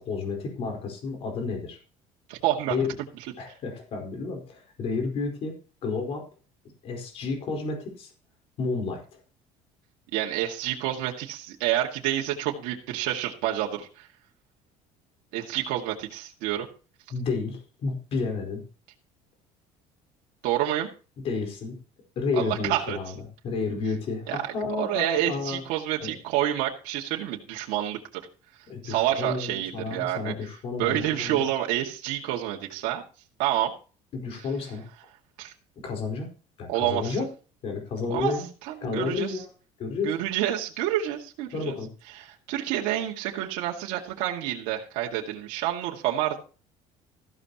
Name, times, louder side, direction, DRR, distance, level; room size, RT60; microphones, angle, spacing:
voice 1, 0.0-1.8 2.7-2.9 3.4-5.5 5.8-6.2 6.8-8.1 8.6-9.0 17.1-18.6 21.2-21.8 22.2-23.2 23.4-25.6 26.0-26.1 28.7-31.5 34.1-34.9 35.8-36.3 36.6-37.3 37.6-38.5 38.8-39.5 39.8-40.1 41.5-41.9, left 4 dB, 50° left, 3 dB, 4.5 m, -31 dB
voice 2, 2.3-2.8 10.1-14.1 15.3-16.7 20.4-20.9 22.3-23.0 24.3-24.4 24.8-28.0 28.8-30.3 30.8-33.0 33.4-33.7 35.4-35.5 36.7-37.1 38.1-38.3 38.6-39.4 40.0-41.8 42.2-46.4, right 13 dB, 80° right, -1 dB, 2.1 m, -28 dB
14.5 x 12.5 x 3.0 m, 0.36 s
cardioid pair, 140°, 13 cm